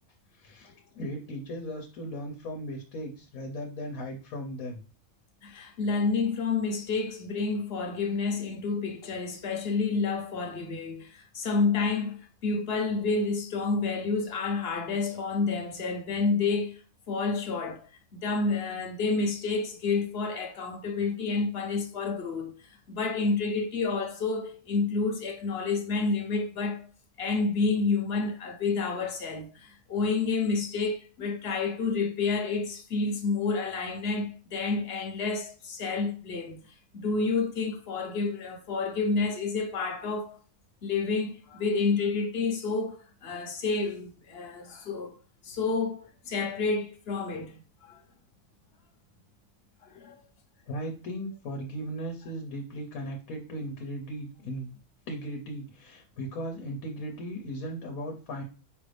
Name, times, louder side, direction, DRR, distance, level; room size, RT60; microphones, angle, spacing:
voice 1, 0.3-4.8 50.7-54.7 55.1-58.4, equal, 90° left, 1.3 m, -37 dB
voice 2, 5.4-16.8 17.1-22.6 22.9-26.8 27.2-40.4 40.8-45.2 45.4-48.0 49.8-50.2, left 4 dB, 50° left, 1.0 m, -29 dB
5.2 x 2.5 x 3.3 m
omnidirectional pair, 1.4 m